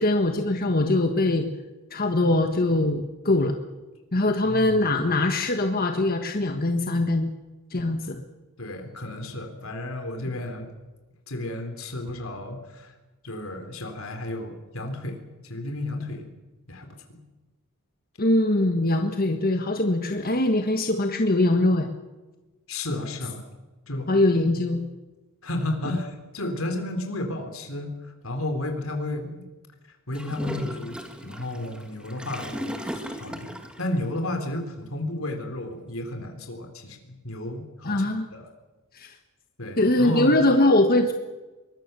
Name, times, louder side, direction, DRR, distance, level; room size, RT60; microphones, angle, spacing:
voice 1, 0.0-1.5 1.9-3.5 4.1-7.3 7.7-8.2 18.2-21.9 24.1-24.8 37.8-38.3 38.9-39.2 39.8-41.1, left 2 dB, 45° left, 5 dB, 1.5 m, -22 dB
voice 2, 4.5-4.8 8.6-10.7 11.3-12.9 13.2-15.2 15.5-16.3 16.7-17.2 22.7-23.4 23.9-24.1 25.4-29.4 30.1-38.0 38.4-38.5 39.6-40.4, left 1 dB, 75° left, 5 dB, 3.7 m, -32 dB
Gurgling / Toilet flush, 30.1-33.9, equal, 5° right, 2.3 m, -36 dB
24.0 x 20.5 x 6.9 m, 1.2 s
head